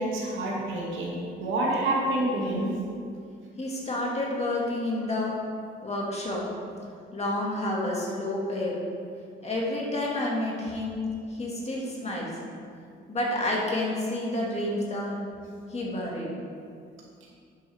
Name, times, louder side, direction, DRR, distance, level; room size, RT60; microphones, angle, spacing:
voice 1, 0.0-2.7, right 1 dB, 80° right, -3 dB, 2.5 m, -28 dB
voice 2, 3.6-5.3 5.8-6.4 7.1-8.8 9.4-11.0 11.2-12.4 13.1-15.2 15.7-16.3, left 1 dB, 35° left, -4 dB, 2.2 m, -29 dB
10.5 x 7.6 x 3.6 m, 2.3 s
cardioid pair, 90°, 20 cm